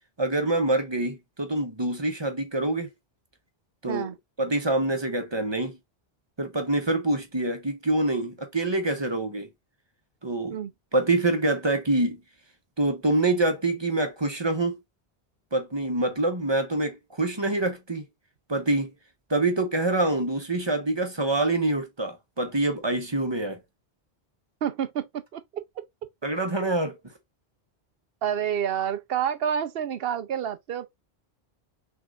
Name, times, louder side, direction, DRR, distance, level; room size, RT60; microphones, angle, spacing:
voice 1, 0.2-2.9 3.8-4.1 4.4-5.8 6.4-9.5 10.2-10.6 10.9-12.2 12.8-14.8 15.5-18.1 18.5-18.9 19.3-23.6 26.2-27.0, right 2 dB, 25° right, 1.0 m, -26 dB
voice 2, 24.6-25.6 28.2-30.9, right 9 dB, 65° right, 0.9 m, -29 dB
6.2 x 3.4 x 2.5 m
omnidirectional pair, 1.1 m